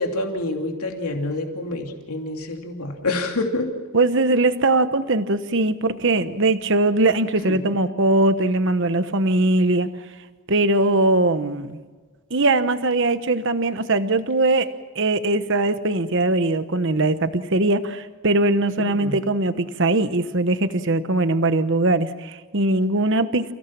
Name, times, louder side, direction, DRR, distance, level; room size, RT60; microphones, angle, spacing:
voice 1, 0.0-3.7 7.5-7.6 18.8-19.2, left 2 dB, 85° left, 3 dB, 2.8 m, -27 dB
voice 2, 3.9-9.9 10.5-11.8 12.3-23.5, right 2 dB, 55° right, 11 dB, 1.1 m, -21 dB
29.5 x 17.0 x 7.3 m, 1.4 s
head